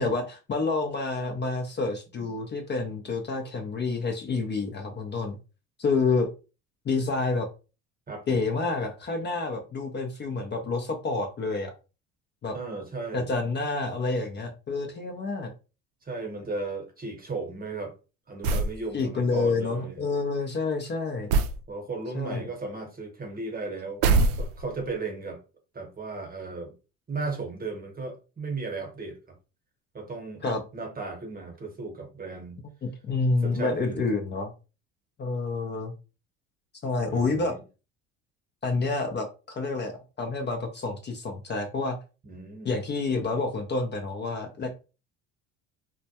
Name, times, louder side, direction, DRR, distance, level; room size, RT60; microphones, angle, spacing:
voice 1, 0.0-5.4 5.8-6.3 6.9-7.5 8.3-11.7 12.4-12.6 13.1-15.5 18.9-21.3 22.1-22.5 30.4-30.6 32.8-34.5 35.2-35.9 36.8-37.5 38.6-39.9 40.2-42.0 42.6-44.7, left 3 dB, 30° left, 0.5 m, -28 dB
voice 2, 8.1-8.4 12.5-13.3 16.0-17.9 18.3-20.0 21.7-24.0 24.3-25.4 25.7-26.7 27.1-29.4 29.9-32.6 33.4-34.0 37.0-37.6 42.2-42.8, right 3 dB, 25° right, 1.0 m, -35 dB
sound 1, 18.4-18.8 21.3-21.6 24.0-24.8, right 3 dB, 65° right, 0.5 m, -23 dB
2.2 x 2.1 x 2.8 m
supercardioid pair, 80°, 36 cm